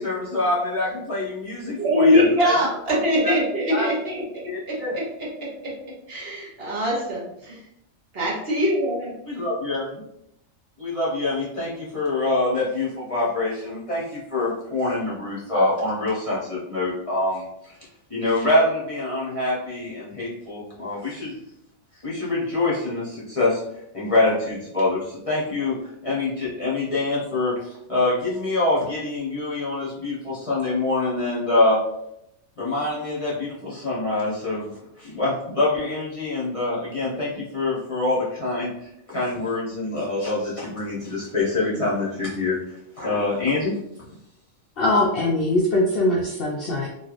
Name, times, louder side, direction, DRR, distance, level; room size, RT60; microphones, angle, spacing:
voice 1, 0.0-2.5 3.2-3.3 3.7-3.9 4.4-5.0 9.3-10.0 10.8-17.8 18.1-21.3 22.0-23.6 23.9-25.8 26.0-31.8 32.6-34.7 35.0-42.6 43.0-43.7, left 2 dB, 30° left, -8 dB, 0.8 m, -25 dB
voice 2, 1.8-5.7 6.1-7.6 8.1-9.2, left 1 dB, 50° right, -4 dB, 1.0 m, -23 dB
voice 3, 44.8-46.9, left 1 dB, 65° left, -3 dB, 0.6 m, -21 dB
3.1 x 2.4 x 2.4 m, 0.77 s
omnidirectional pair, 1.4 m